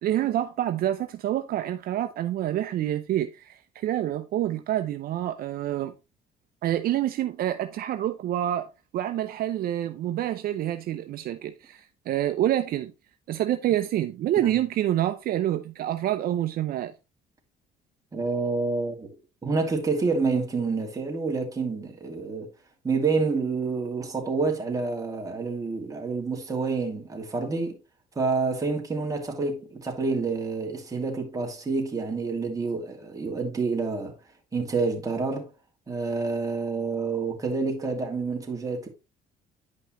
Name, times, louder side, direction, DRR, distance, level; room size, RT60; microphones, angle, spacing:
voice 1, 0.0-5.9 6.6-12.9 13.3-16.9, right 12 dB, 60° right, 0.7 m, -27 dB
voice 2, 18.1-19.1 19.4-22.5 22.8-27.8 28.2-34.2 34.5-35.5 35.9-38.9, right 4 dB, 20° right, 2.5 m, -28 dB
10.5 x 5.4 x 3.1 m
cardioid pair, 110°, 17 cm